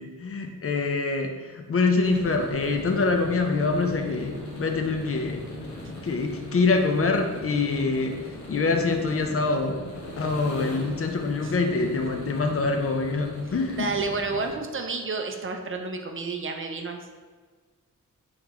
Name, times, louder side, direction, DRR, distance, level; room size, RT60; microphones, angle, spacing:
voice 1, 0.0-5.5 6.0-8.2 8.5-9.9 10.2-13.9, left 3 dB, 45° left, 4 dB, 0.5 m, -25 dB
sound 1, 2.0-14.6, left 1 dB, 70° left, 0.8 m, -39 dB
voice 2, 13.8-17.1, right 3 dB, 45° right, 4 dB, 0.4 m, -30 dB
3.8 x 3.0 x 3.4 m, 1.5 s
wide cardioid pair, 110°, 31 cm